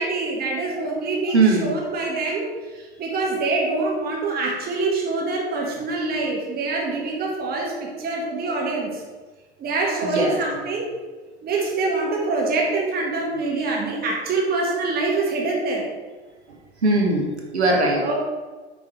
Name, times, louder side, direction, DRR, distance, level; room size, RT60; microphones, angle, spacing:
voice 1, 0.0-9.0 9.6-10.9 11.4-15.9 18.0-18.2, right 3 dB, 30° right, -1 dB, 1.4 m, -25 dB
voice 2, 1.3-1.7 8.5-8.6 10.0-10.4 16.5-18.0, right 2 dB, 85° right, 0 dB, 1.4 m, -21 dB
6.9 x 4.2 x 4.3 m, 1.3 s
figure-of-eight pair, 85°, 33 cm